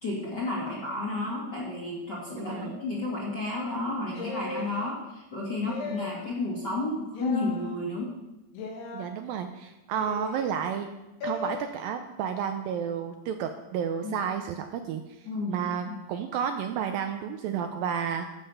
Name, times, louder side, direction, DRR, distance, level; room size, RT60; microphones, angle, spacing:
voice 1, 0.0-8.1 14.0-14.2 15.3-16.0, left 2 dB, 35° left, -5 dB, 1.9 m, -32 dB
voice 2, 2.4-2.8 8.9-10.9 11.2-18.3, right 8 dB, 80° right, 6 dB, 2.2 m, -31 dB
sound 1, 4.1-4.7 5.6-6.2 7.1-7.6 8.5-9.1 10.0-10.4 11.2-11.5, left 4 dB, 85° left, 3.7 m, -36 dB
12.0 x 7.5 x 5.6 m, 1.0 s
omnidirectional pair, 4.5 m